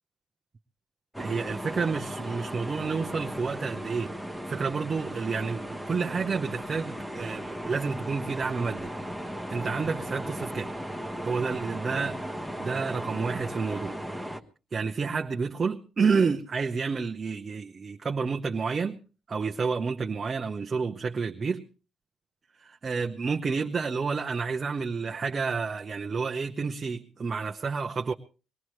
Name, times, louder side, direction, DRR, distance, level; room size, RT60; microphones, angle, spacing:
sound 1, 1.1-14.4, equal, ahead, 1.2 m, -36 dB
voice 1, 1.2-4.1 4.5-8.9 9.5-10.7 11.2-12.2 12.6-14.0 14.7-19.0 19.3-21.7 22.6-28.1, right 5 dB, 35° right, 0.9 m, -30 dB
22.5 x 18.0 x 3.2 m
cardioid pair, 90°, 0 cm